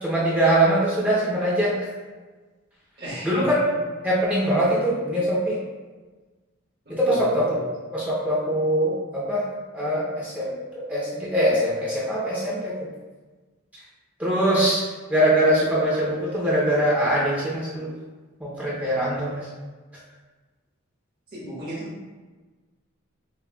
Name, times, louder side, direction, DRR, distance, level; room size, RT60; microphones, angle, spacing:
voice 1, 0.0-1.8 3.2-3.7 4.0-5.6 6.9-7.6 7.9-9.5 9.7-12.9 14.2-14.8 15.1-17.9 18.4-19.5, right 1 dB, 5° right, -7 dB, 0.8 m, -22 dB
voice 2, 3.0-3.6 6.8-7.6 21.3-22.1, right 1 dB, 50° right, -7 dB, 1.4 m, -35 dB
6.8 x 2.3 x 2.4 m, 1.3 s
head